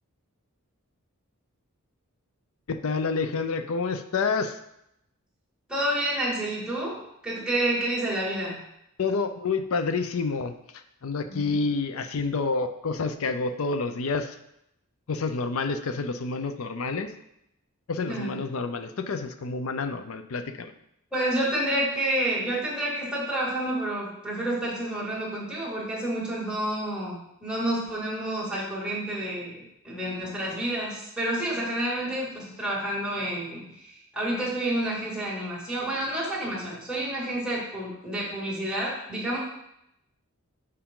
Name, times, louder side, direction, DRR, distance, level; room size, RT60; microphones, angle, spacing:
voice 1, 2.7-4.6 9.0-14.4 15.1-17.1 17.9-20.7, left 4 dB, 70° left, 9 dB, 0.5 m, -29 dB
voice 2, 5.7-8.6 11.2-11.6 18.1-18.3 21.1-39.4, right 1 dB, 5° right, -7 dB, 2.2 m, -29 dB
7.0 x 4.9 x 3.7 m, 0.79 s
head